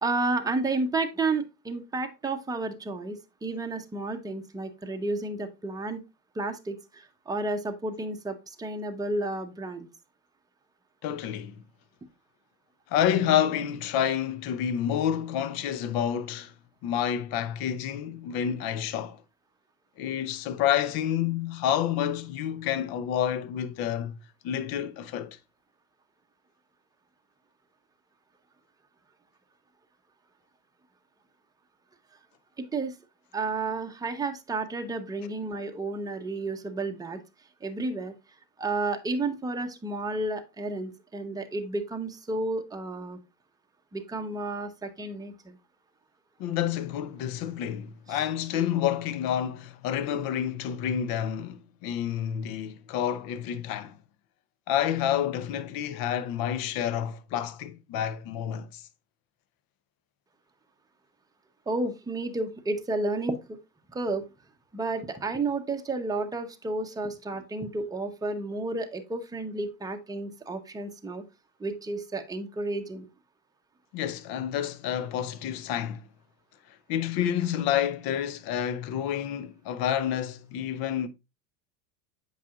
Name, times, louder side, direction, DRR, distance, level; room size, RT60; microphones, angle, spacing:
voice 1, 0.0-6.0 6.3-9.9 32.6-32.9 33.3-37.2 37.6-38.1 38.6-43.2 43.9-45.6 48.1-48.2 61.7-63.6 63.9-64.3 64.7-71.2 71.6-73.0, right 2 dB, 10° right, 0.8 m, -31 dB
voice 2, 11.0-11.5 12.9-16.5 16.8-19.2 20.0-24.2 24.4-25.4 46.4-54.0 54.7-58.8 73.9-76.0 76.9-81.1, left 10 dB, 45° left, 0.8 m, -29 dB
8.3 x 5.6 x 2.4 m
hypercardioid pair, 90°, 48 cm